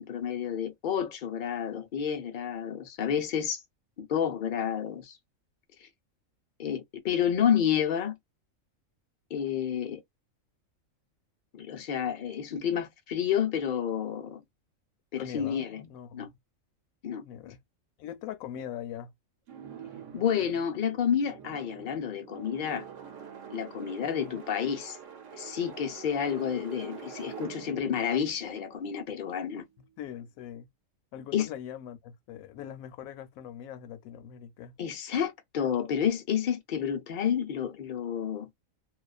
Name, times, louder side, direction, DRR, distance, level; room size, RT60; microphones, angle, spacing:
voice 1, 0.0-3.6 4.0-5.2 5.8-5.9 6.6-8.1 9.3-10.0 11.5-14.4 15.1-15.9 16.1-16.3 17.0-17.2 20.1-22.8 23.5-25.0 25.3-29.6 31.3-31.5 34.8-38.5, left 8 dB, 55° left, 0.5 m, -30 dB
voice 2, 15.2-16.3 17.2-17.6 18.0-19.1 24.0-24.4 30.0-30.7 31.1-34.8, left 10 dB, 85° left, 1.0 m, -42 dB
sound 1, 19.5-29.4, right 8 dB, 70° right, 1.0 m, -46 dB
2.3 x 2.3 x 2.3 m
omnidirectional pair, 1.4 m